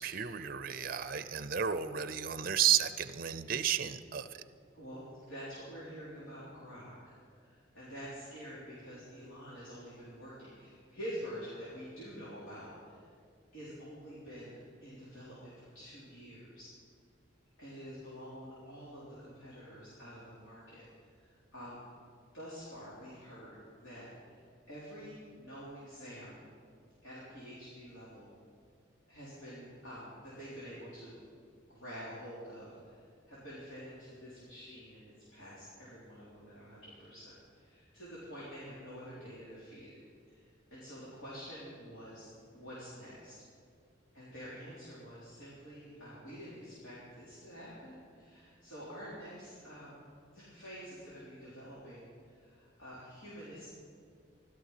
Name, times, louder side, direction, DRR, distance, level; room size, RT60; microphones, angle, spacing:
voice 1, 0.0-4.4, right 9 dB, 45° right, 13 dB, 0.5 m, -32 dB
voice 2, 4.7-13.0 13.5-16.7 17.6-20.8 21.2-21.8 22.3-24.4 24.7-26.4 27.0-28.3 29.1-31.2 31.7-40.0 40.3-43.3 44.1-50.0 50.3-53.7, equal, 85° left, -9 dB, 4.0 m, -48 dB
15.0 x 12.5 x 5.8 m, 2.2 s
head